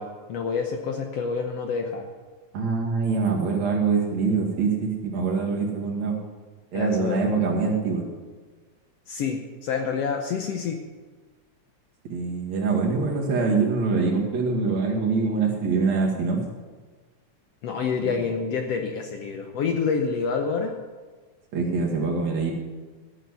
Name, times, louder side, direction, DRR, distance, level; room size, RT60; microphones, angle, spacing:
voice 1, 0.0-2.1 6.7-7.2 9.1-10.8 17.6-20.8, left 5 dB, 65° left, 4 dB, 1.7 m, -28 dB
voice 2, 2.5-6.2 6.7-8.1 12.1-16.4 18.0-18.1 21.5-22.5, right 4 dB, 65° right, -1 dB, 3.3 m, -24 dB
14.0 x 6.6 x 8.2 m, 1.4 s
omnidirectional pair, 3.4 m